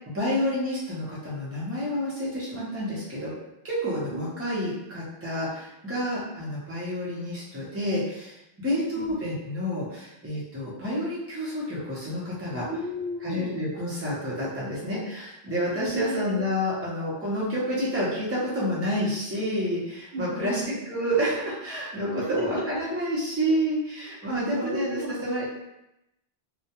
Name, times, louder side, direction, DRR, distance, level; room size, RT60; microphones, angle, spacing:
voice 1, 0.1-3.3 3.6-12.7 13.2-25.5, equal, 15° right, -7 dB, 0.6 m, -29 dB
voice 2, 8.6-9.1 12.6-13.6 15.8-16.4 20.1-20.7 22.2-22.6 23.5-23.6 24.3-25.2, right 1 dB, 70° right, -4 dB, 0.9 m, -33 dB
2.3 x 2.1 x 2.9 m, 0.88 s
omnidirectional pair, 1.1 m